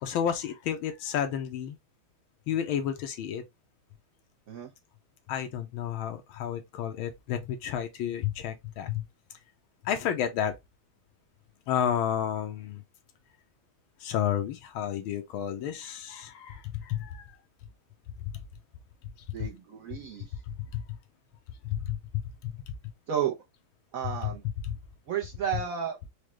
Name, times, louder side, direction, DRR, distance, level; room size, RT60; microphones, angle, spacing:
voice 1, 0.0-1.8 2.5-3.4 5.3-9.0 9.8-10.5 11.7-12.8 14.0-17.3 20.7-20.8 21.6-22.0 22.4-22.5 24.7-24.8, left 9 dB, 85° left, 1.5 m, -31 dB
voice 2, 19.3-20.3 23.1-23.4 23.9-24.4 25.1-26.0, right 8 dB, 70° right, 0.8 m, -32 dB
4.9 x 2.1 x 2.9 m
omnidirectional pair, 2.2 m